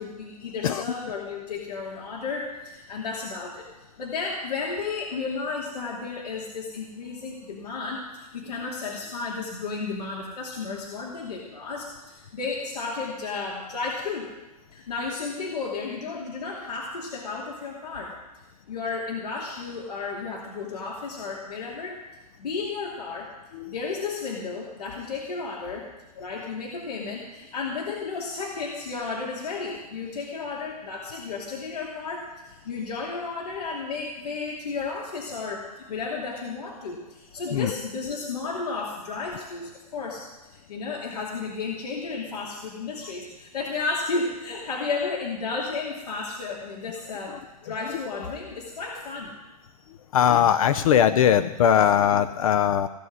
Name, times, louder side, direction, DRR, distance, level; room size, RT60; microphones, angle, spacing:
voice 1, 0.0-3.6 4.0-14.3 14.7-18.2 18.7-22.0 22.4-23.3 23.6-25.9 26.2-47.4 47.6-49.4, left 4 dB, 85° left, -3 dB, 2.7 m, -33 dB
voice 2, 50.1-52.9, left 9 dB, 60° left, 11 dB, 0.7 m, -20 dB
17.0 x 5.7 x 9.5 m, 1.0 s
hypercardioid pair, 150°, 20 cm